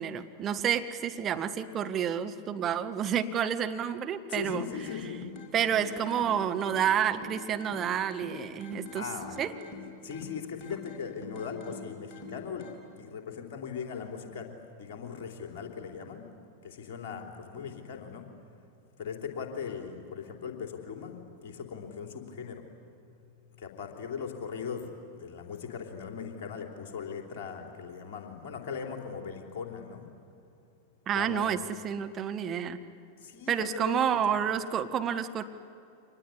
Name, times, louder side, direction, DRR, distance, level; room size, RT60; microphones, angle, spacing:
voice 1, 0.0-4.7 5.5-9.0 9.4-9.5 31.1-31.6 31.8-32.8 33.5-35.4, right 8 dB, 30° right, 7 dB, 1.4 m, -29 dB
voice 2, 4.3-5.2 8.9-9.4 10.0-12.7 13.0-16.3 16.6-18.3 19.0-22.6 23.5-30.1 31.1-31.5 33.2-34.0 34.3-34.4, left 6 dB, 50° left, 3 dB, 3.5 m, -39 dB
sound 1, 4.7-12.7, left 3 dB, 35° left, 4.9 m, -46 dB
25.5 x 20.5 x 10.0 m, 2.6 s
figure-of-eight pair, 90°, 0 cm